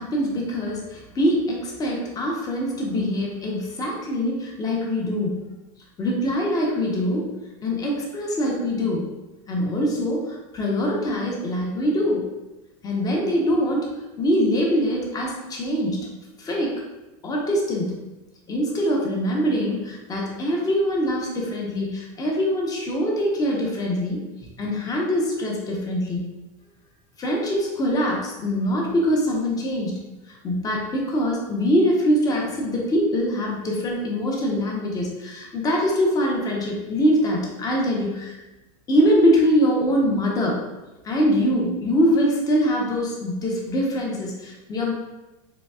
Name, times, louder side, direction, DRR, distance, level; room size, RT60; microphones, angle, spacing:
voice 1, 0.0-5.4 6.0-7.3 7.6-9.1 9.5-12.3 12.8-13.9 14.2-16.1 16.4-16.7 17.2-18.0 18.5-26.3 27.2-38.4 38.9-40.6 41.0-44.9, equal, 20° left, -2 dB, 0.8 m, -23 dB
4.0 x 3.1 x 2.4 m, 1.0 s
supercardioid pair, 135°, 18 cm